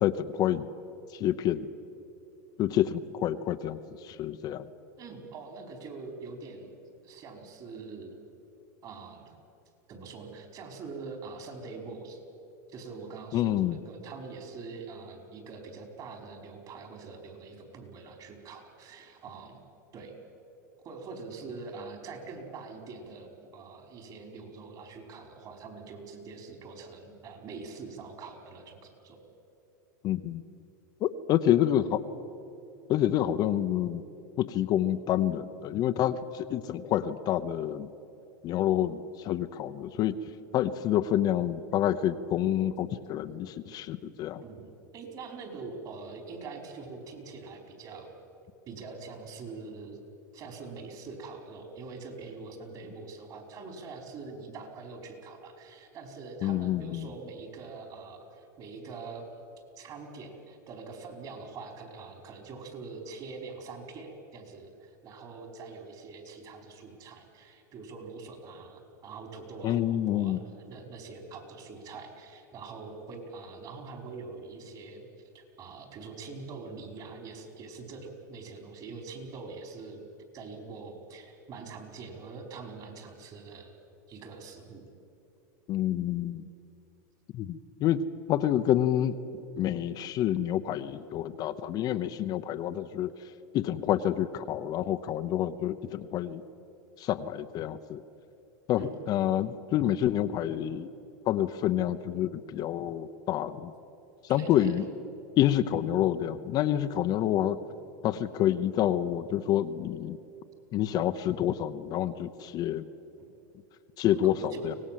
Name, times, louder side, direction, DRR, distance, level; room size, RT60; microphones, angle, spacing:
voice 1, 0.0-0.7 1.1-1.7 2.6-4.7 13.3-13.8 30.0-30.4 31.0-32.0 32.9-34.0 34.4-37.9 38.4-40.1 40.5-44.4 56.4-57.1 69.6-70.4 85.7-86.4 87.3-88.0 88.3-89.2 89.6-93.1 93.5-96.4 97.0-98.0 98.7-100.9 101.3-103.7 104.3-104.8 105.4-107.6 108.0-110.2 110.7-112.8 114.0-114.8, left 11 dB, 40° left, 9 dB, 0.8 m, -28 dB
voice 2, 5.0-6.8 7.0-8.2 8.8-9.3 9.9-12.2 12.7-19.6 19.9-20.1 20.8-29.2 44.4-48.1 48.7-50.0 50.3-59.3 59.8-80.0 80.3-83.7 84.1-84.8 98.8-98.9 104.3-104.9 113.2-113.3 114.2-114.8, right 4 dB, 40° right, 4 dB, 4.6 m, -44 dB
24.5 x 18.5 x 7.6 m, 2.9 s
supercardioid pair, 120°, 10 cm